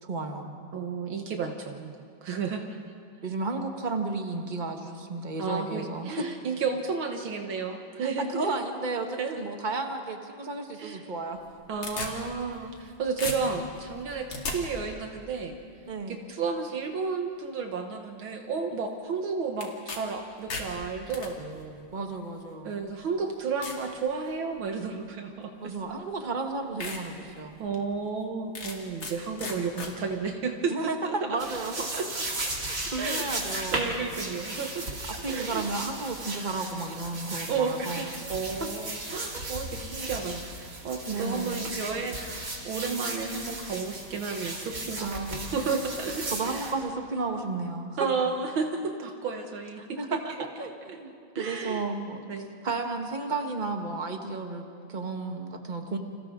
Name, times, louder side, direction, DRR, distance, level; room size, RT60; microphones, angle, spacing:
voice 1, 0.0-0.5 3.2-6.3 8.0-11.4 15.9-16.2 21.9-22.8 25.6-27.6 30.7-31.9 32.7-34.0 35.2-38.1 39.3-39.4 41.1-41.6 45.0-45.5 46.2-48.0 50.0-52.2 52.6-56.0, right 3 dB, 25° right, 4 dB, 1.5 m, -33 dB
voice 2, 0.7-2.6 5.4-8.6 9.2-9.5 10.8-11.0 11.7-15.6 16.1-21.9 22.6-25.8 26.2-26.3 27.6-31.4 31.9-32.1 33.0-33.3 33.7-35.7 37.5-42.3 42.6-46.7 48.0-50.2 51.4-51.9 52.3-52.5, right 5 dB, 75° right, 3 dB, 2.0 m, -32 dB
sound 1, 11.3-12.9 13.2-14.6 19.6-20.0 20.3-21.3 22.2-22.3 22.9-23.0 23.6-23.8 24.3-24.7 25.8-25.9 26.4-26.5 26.8-27.0 27.4-27.5 28.5-29.1 29.4-29.9, left 3 dB, 70° left, 3.0 m, -36 dB
sound 2, 31.4-46.7, right 2 dB, 40° right, 3.2 m, -36 dB
30.0 x 27.0 x 3.8 m, 2.4 s
omnidirectional pair, 2.3 m